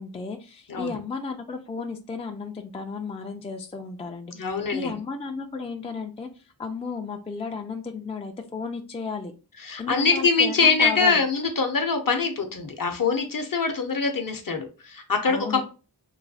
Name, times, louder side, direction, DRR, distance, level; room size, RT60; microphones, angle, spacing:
voice 1, 0.0-6.3 6.6-9.3 9.8-11.2 15.2-15.6, left 4 dB, 15° left, 4 dB, 0.3 m, -33 dB
voice 2, 4.3-5.0 9.6-15.7, left 4 dB, 50° left, 5 dB, 0.7 m, -24 dB
3.0 x 2.2 x 2.7 m, 0.34 s
wide cardioid pair, 45°, 43 cm